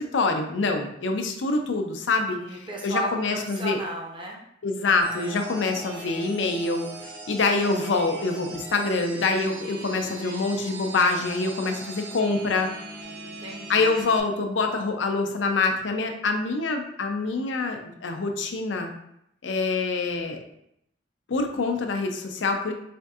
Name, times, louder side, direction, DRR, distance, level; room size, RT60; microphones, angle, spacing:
voice 1, 0.0-3.8 4.6-12.7 13.7-18.9 19.4-20.4 21.3-22.7, left 3 dB, 85° left, 5 dB, 0.5 m, -25 dB
voice 2, 2.3-4.4 13.1-14.0, equal, 25° right, -1 dB, 0.5 m, -34 dB
sound 1, 5.0-14.2, right 3 dB, 70° right, 0.8 m, -40 dB
4.3 x 2.6 x 2.4 m, 0.75 s
head